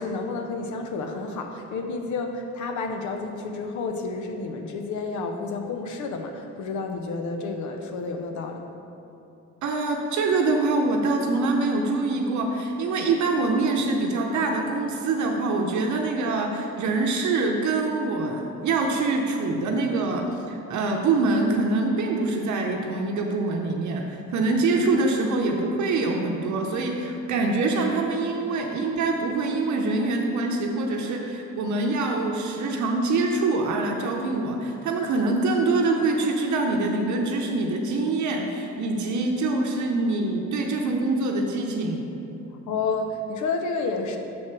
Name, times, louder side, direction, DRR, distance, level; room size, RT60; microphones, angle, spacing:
voice 1, 0.0-8.6 42.7-44.2, left 3 dB, 75° left, 5 dB, 0.8 m, -30 dB
voice 2, 9.6-42.1 44.1-44.2, right 3 dB, 70° right, 1 dB, 0.8 m, -25 dB
6.3 x 4.4 x 6.0 m, 2.9 s
cardioid pair, 90°, 30 cm